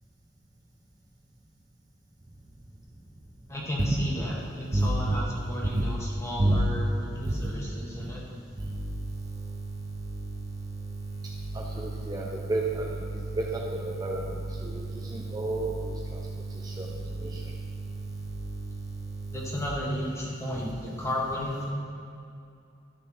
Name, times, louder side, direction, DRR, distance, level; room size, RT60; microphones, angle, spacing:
voice 1, 3.5-8.2 19.3-21.7, equal, 15° left, -4 dB, 1.5 m, -33 dB
voice 2, 4.7-5.1 6.4-6.6 12.1-12.2 12.5-12.8 13.8-14.2 15.1-15.7 16.8-16.9, right 2 dB, 20° right, -2 dB, 0.6 m, -26 dB
11.5 x 5.6 x 4.3 m, 2.5 s
head